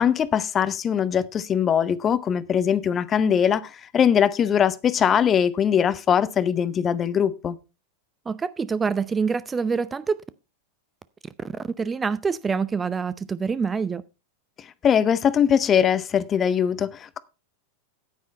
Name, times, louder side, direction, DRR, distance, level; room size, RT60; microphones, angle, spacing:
voice 1, 0.0-7.6 14.6-17.2, left 8 dB, 25° left, 0.7 m, -21 dB
voice 2, 8.3-10.2 11.4-14.0, right 5 dB, 15° right, 0.4 m, -26 dB
9.5 x 9.3 x 4.3 m
figure-of-eight pair, 90°, 0 cm